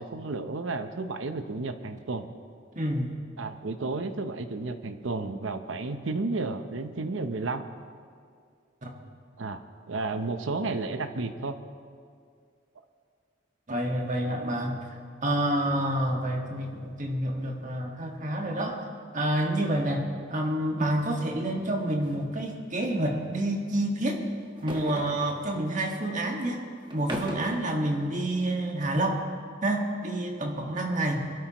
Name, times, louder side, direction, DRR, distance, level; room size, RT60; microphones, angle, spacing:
voice 1, 0.0-2.3 3.4-7.6 9.4-11.5, right 3 dB, 75° right, 9 dB, 0.8 m, -32 dB
voice 2, 2.7-3.1 8.8-8.9 13.7-14.8 15.2-18.8 19.1-24.2 24.6-26.6 26.9-29.2 29.6-31.3, right 1 dB, 40° right, 1 dB, 1.7 m, -28 dB
sound 1, 22.0-22.2 22.5-22.6 24.5-25.7 26.9-27.7, equal, 25° right, 1.3 m, -37 dB
23.0 x 12.5 x 3.0 m, 2.2 s
head